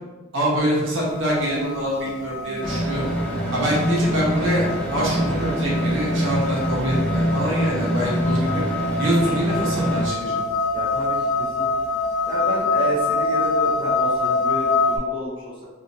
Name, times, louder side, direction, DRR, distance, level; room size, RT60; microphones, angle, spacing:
voice 1, 0.3-3.1 3.5-8.6 9.0-10.4, equal, 70° right, -5 dB, 1.0 m, -24 dB
sound 1, 1.1-15.0, left 3 dB, 50° left, 0.9 m, -26 dB
sound 2, 2.6-10.1, equal, 5° left, 0.4 m, -24 dB
voice 2, 10.7-11.7 12.3-15.7, equal, 25° right, -8 dB, 0.9 m, -30 dB
3.3 x 2.8 x 2.6 m, 1.2 s
head